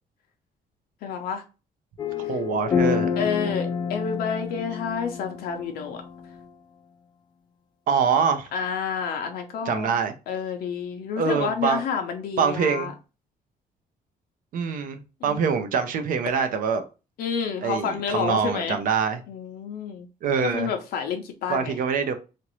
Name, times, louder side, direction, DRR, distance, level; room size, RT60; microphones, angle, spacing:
voice 1, 1.0-1.4 3.2-6.0 8.5-10.0 10.3-12.9 15.2-15.6 17.2-18.8 19.3-20.1 20.4-21.8, left 6 dB, 80° left, 0.6 m, -29 dB
sound 1, 2.0-6.4, left 6 dB, 30° left, 0.3 m, -28 dB
voice 2, 2.2-3.2 7.9-8.5 9.6-10.1 11.2-11.8 12.4-12.9 14.5-16.8 17.6-19.2 20.2-20.7 21.5-22.1, right 6 dB, 60° right, 0.5 m, -24 dB
2.9 x 2.5 x 3.0 m
cardioid pair, 160°, 16 cm